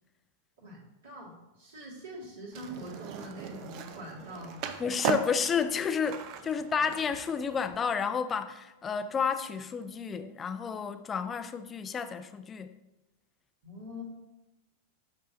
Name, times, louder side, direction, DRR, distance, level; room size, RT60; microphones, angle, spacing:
voice 1, 0.6-4.8 13.6-14.0, equal, 65° right, 2.0 m, -44 dB
Skateboard, 2.5-7.8, right 8 dB, 40° right, 0.5 m, -38 dB
voice 2, 4.8-12.7, left 6 dB, 20° left, 0.4 m, -31 dB
8.4 x 5.6 x 2.7 m
figure-of-eight pair, 90°, 0 cm